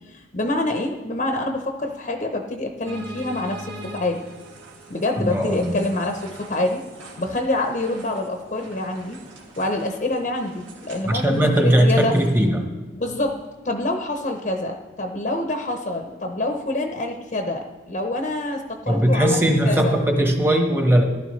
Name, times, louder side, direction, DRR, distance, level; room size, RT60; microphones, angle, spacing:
voice 1, 0.0-4.2 4.9-6.8 7.2-9.2 9.6-12.2 13.0-20.0, left 2 dB, 40° left, 3 dB, 0.7 m, -26 dB
sound 1, 2.8-12.5, right 1 dB, 80° right, 2.2 m, -42 dB
voice 2, 5.2-5.8 11.0-12.7 18.9-21.0, equal, 10° right, 3 dB, 1.1 m, -19 dB
15.0 x 11.5 x 3.2 m, 1.2 s
head